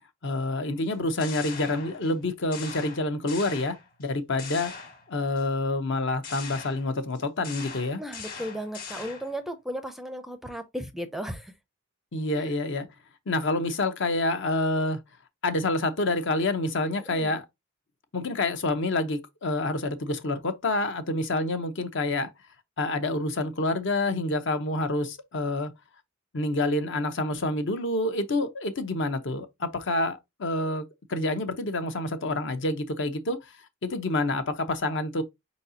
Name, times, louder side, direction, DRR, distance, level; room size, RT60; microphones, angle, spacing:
voice 1, 0.2-4.7 5.1-8.0 12.1-12.9 13.3-15.0 15.4-17.4 18.1-22.3 22.8-25.7 26.3-33.5 33.8-35.2, left 2 dB, 55° left, 0.8 m, -28 dB
sound 1, 0.9-2.2 2.5-4.1 4.4-5.4 6.2-9.4, left 5 dB, 40° left, 1.5 m, -41 dB
voice 2, 8.0-11.5 12.4-12.5 17.1-17.4, equal, ahead, 0.5 m, -35 dB
4.9 x 4.1 x 2.6 m
head